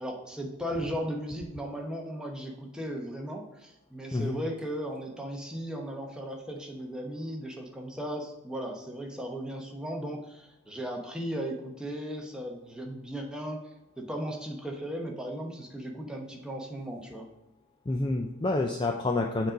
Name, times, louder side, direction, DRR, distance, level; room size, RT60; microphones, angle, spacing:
voice 1, 0.0-13.6 14.0-17.3, equal, 5° right, 0 dB, 0.9 m, -36 dB
voice 2, 17.9-19.5, left 2 dB, 20° left, 2 dB, 0.4 m, -28 dB
7.1 x 3.9 x 5.1 m, 0.96 s
head